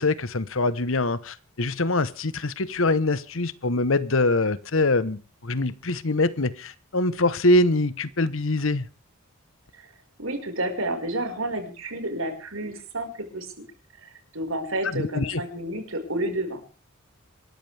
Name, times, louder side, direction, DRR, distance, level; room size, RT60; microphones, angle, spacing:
voice 1, 0.0-8.8 14.9-15.4, left 2 dB, 65° left, 1.1 m, -24 dB
voice 2, 10.2-13.5 14.0-16.6, right 1 dB, 70° right, 5.1 m, -30 dB
27.0 x 13.5 x 3.5 m
head